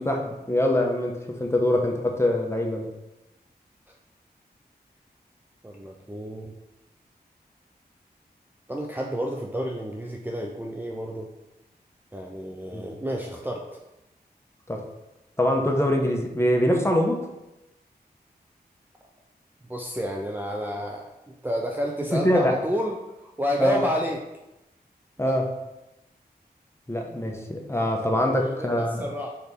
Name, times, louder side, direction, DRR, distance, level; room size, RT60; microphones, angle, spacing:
voice 1, 0.0-2.9 12.7-12.8 14.7-14.8 15.4-17.2 22.1-22.5 23.6-23.8 25.2-25.5 26.9-29.1, left 1 dB, 15° left, 1 dB, 1.1 m, -24 dB
voice 2, 5.6-6.5 8.7-11.3 12.1-13.7 19.7-24.2 25.2-25.3 28.2-29.3, equal, 10° right, 0 dB, 0.6 m, -30 dB
4.3 x 4.2 x 5.2 m, 0.94 s
cardioid pair, 55°, 17 cm